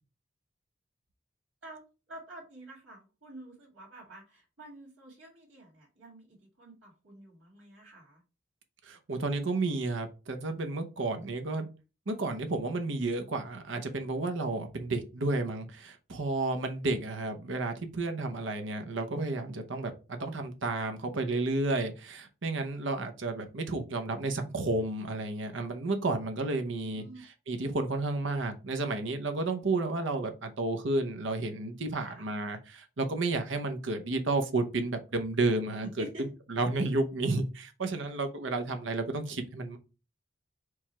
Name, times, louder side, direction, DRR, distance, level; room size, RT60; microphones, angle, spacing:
voice 1, 2.1-8.2 26.8-27.3 32.0-32.3 35.8-36.3, right 1 dB, 85° right, 1.8 m, -48 dB
voice 2, 8.8-11.7 12.1-35.9 36.2-39.8, right 2 dB, 70° right, 0.7 m, -32 dB
4.7 x 2.4 x 4.2 m
head